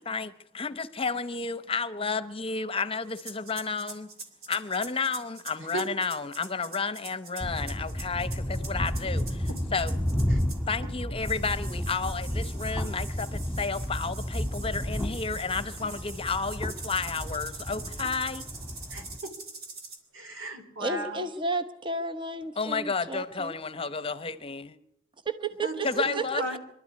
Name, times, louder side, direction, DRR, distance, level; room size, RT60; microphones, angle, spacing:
voice 1, 0.1-4.1 4.5-9.9 10.7-18.4 22.6-24.8 25.8-26.6, left 4 dB, 30° left, 0.9 m, -31 dB
sound 1, 3.1-10.8 11.2-20.0, right 3 dB, 50° right, 3.3 m, -44 dB
sound 2, 7.4-19.2, equal, 10° right, 2.0 m, -32 dB
voice 2, 18.9-19.3 20.1-21.3 25.6-25.7 26.0-26.6, right 2 dB, 80° right, 3.6 m, -36 dB
voice 3, 20.8-23.5 25.2-26.6, right 3 dB, 25° right, 0.9 m, -32 dB
24.5 x 13.0 x 9.6 m
head